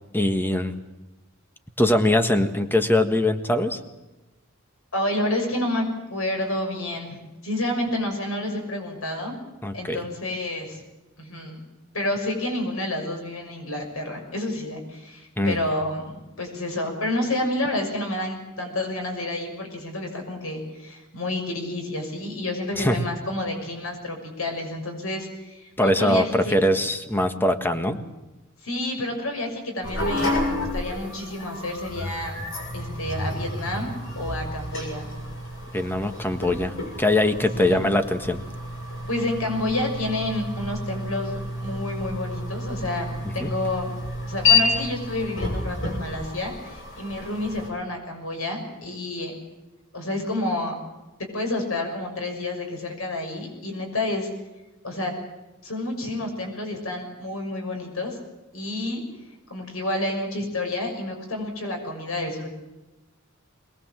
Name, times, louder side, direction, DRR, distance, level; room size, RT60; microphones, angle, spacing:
voice 1, 0.1-0.7 1.8-3.8 9.6-10.0 15.4-15.6 22.8-23.0 25.8-28.0 35.7-38.4 43.2-43.5, left 1 dB, 10° left, 8 dB, 1.5 m, -22 dB
voice 2, 4.9-5.9 6.1-7.2 7.4-9.4 9.7-10.8 11.2-11.6 11.9-26.5 28.6-32.4 32.7-35.1 37.5-37.9 39.1-43.9 44.3-49.3 49.9-50.7 51.2-54.3 54.8-55.1 55.6-58.2 58.5-59.0 59.5-62.5, left 1 dB, 80° left, 3 dB, 6.3 m, -29 dB
sound 1, 29.8-47.7, left 3 dB, 65° left, 6.8 m, -29 dB
22.5 x 20.5 x 7.6 m, 1.1 s
head